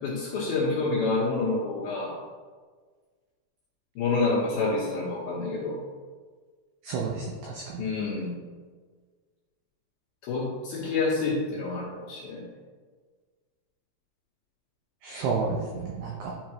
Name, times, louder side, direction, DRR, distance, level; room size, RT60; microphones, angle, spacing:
voice 1, 0.0-2.1 4.0-5.7 7.8-8.3 10.2-12.4, left 3 dB, 70° left, -6 dB, 2.5 m, -28 dB
voice 2, 6.8-7.8 15.0-16.3, right 4 dB, 85° right, -2 dB, 2.3 m, -31 dB
11.0 x 5.1 x 3.1 m, 1.5 s
omnidirectional pair, 5.7 m